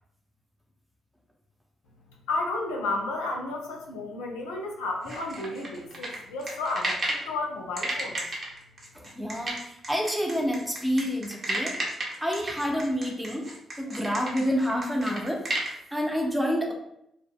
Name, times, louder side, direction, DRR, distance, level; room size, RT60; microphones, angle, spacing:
voice 1, 2.3-8.3, left 2 dB, 90° left, 1 dB, 0.4 m, -32 dB
sound 1, 5.1-7.3 7.8-15.7, right 1 dB, 50° right, 0.8 m, -33 dB
voice 2, 8.9-11.8 12.2-16.7, equal, 10° right, 0 dB, 0.7 m, -28 dB
2.1 x 2.0 x 3.5 m, 0.77 s
supercardioid pair, 55°, 0 cm